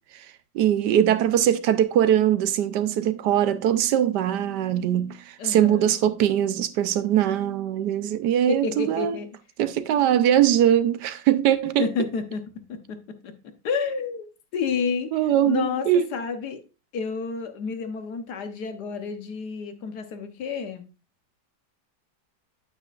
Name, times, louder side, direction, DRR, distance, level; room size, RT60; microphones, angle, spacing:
voice 1, 0.5-9.2 9.6-11.8 15.1-16.0, right 10 dB, 75° right, 1.2 m, -21 dB
voice 2, 5.4-5.9 8.5-9.3 11.8-13.3 13.6-14.3 14.5-15.1 15.4-16.6 16.9-20.8, left 5 dB, 70° left, 1.5 m, -30 dB
9.0 x 8.5 x 2.4 m
omnidirectional pair, 1.9 m